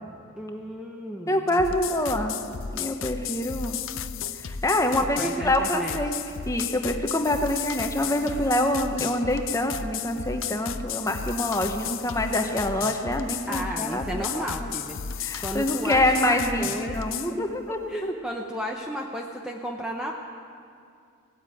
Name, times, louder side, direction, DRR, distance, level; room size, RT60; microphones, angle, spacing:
voice 1, 0.4-1.6 5.1-6.0 13.5-17.0 17.4-20.1, equal, 5° right, 0 dB, 0.7 m, -34 dB
voice 2, 1.3-2.4 2.7-3.8 4.4-6.1 6.5-14.7 15.2-18.1, left 1 dB, 15° left, 4 dB, 1.0 m, -26 dB
sound 1, 1.5-17.3, left 7 dB, 60° left, 0.5 m, -34 dB
17.5 x 8.9 x 9.1 m, 2.4 s
head